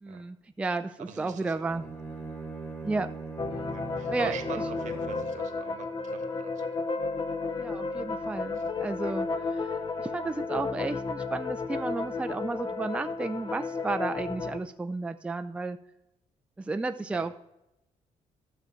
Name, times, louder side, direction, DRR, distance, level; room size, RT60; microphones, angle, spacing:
voice 1, 0.0-1.8 2.8-3.1 4.1-4.6 7.6-9.7 10.0-15.8 16.6-17.3, right 3 dB, 10° right, 8 dB, 0.4 m, -33 dB
voice 2, 1.0-1.9 3.7-6.8 8.5-8.6 9.0-9.1 17.1-17.3, right 8 dB, 75° right, 8 dB, 1.3 m, -44 dB
Bowed string instrument, 1.6-5.4, right 3 dB, 15° left, 1.6 m, -40 dB
sound 1, 3.4-14.6, left 4 dB, 35° left, 0.7 m, -33 dB
12.5 x 6.9 x 4.5 m, 0.88 s
cardioid pair, 150°, 13 cm